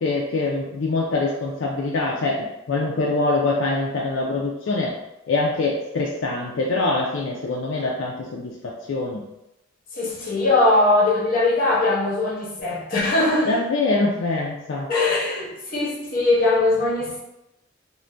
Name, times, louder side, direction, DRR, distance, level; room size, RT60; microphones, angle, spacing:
voice 1, 0.0-4.9 5.3-9.2 13.5-14.9, left 3 dB, 80° left, -3 dB, 0.4 m, -24 dB
voice 2, 9.9-13.6 14.9-17.2, left 2 dB, 50° left, -5 dB, 0.9 m, -21 dB
2.5 x 2.2 x 3.2 m, 0.90 s
head